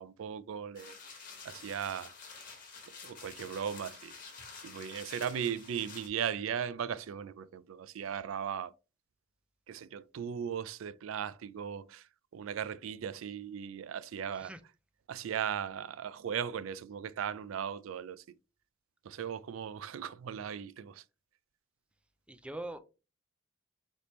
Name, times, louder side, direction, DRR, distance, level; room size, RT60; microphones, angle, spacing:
voice 1, 0.0-2.1 3.0-4.2 4.6-8.7 9.7-14.5 15.1-18.2 19.0-21.0, right 8 dB, 80° right, 0.4 m, -38 dB
sound 1, 0.8-6.1, left 5 dB, 40° left, 1.3 m, -49 dB
voice 2, 22.3-22.8, right 1 dB, 5° right, 0.4 m, -41 dB
4.2 x 3.4 x 3.0 m
head